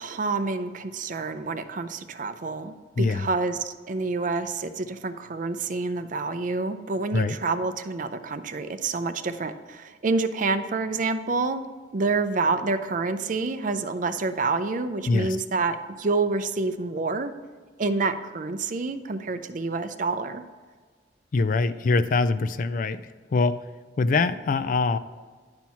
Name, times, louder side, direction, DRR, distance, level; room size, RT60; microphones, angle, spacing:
voice 1, 0.0-11.6 11.9-17.3 17.8-20.4, right 3 dB, 45° right, 10 dB, 0.5 m, -28 dB
voice 2, 3.0-3.3 7.1-7.4 15.1-15.4 21.3-23.0 23.3-23.6 24.0-25.0, left 3 dB, 45° left, 13 dB, 0.3 m, -23 dB
10.5 x 4.5 x 5.6 m, 1.5 s
head